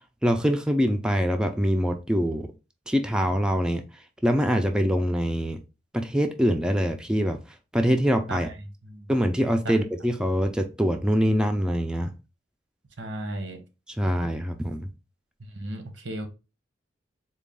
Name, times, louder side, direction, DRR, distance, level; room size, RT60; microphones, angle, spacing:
voice 1, 0.2-2.5 2.9-3.8 4.2-5.6 5.9-7.4 7.7-8.5 9.1-12.1 14.0-14.9, equal, 5° right, 0.3 m, -24 dB
voice 2, 8.3-9.1 9.7-9.8 13.0-13.6 15.5-16.3, right 1 dB, 90° right, 0.9 m, -35 dB
3.9 x 2.2 x 3.5 m
head